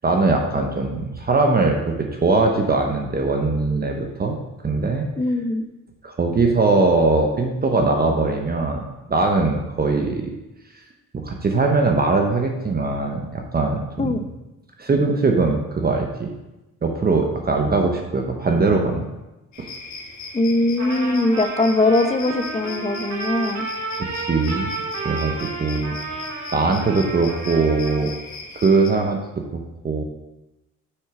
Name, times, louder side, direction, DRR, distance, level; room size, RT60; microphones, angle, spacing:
voice 1, 0.0-1.9 2.2-4.4 4.6-5.0 6.0-8.8 9.1-10.2 11.2-14.1 14.8-16.3 16.8-19.1 19.6-19.7 24.1-24.7 25.0-25.9 26.5-28.1 28.5-29.2 29.8-30.0, right 3 dB, 30° right, 2 dB, 1.0 m, -20 dB
voice 2, 5.2-5.7 14.0-14.2 20.3-23.7, left 2 dB, 20° left, 9 dB, 0.7 m, -21 dB
sound 1, 19.5-28.9, left 3 dB, 65° left, 1.6 m, -38 dB
Trumpet, 20.8-28.1, right 3 dB, 65° right, 2.2 m, -32 dB
6.5 x 6.3 x 5.0 m, 1.0 s
cardioid pair, 90°, 30 cm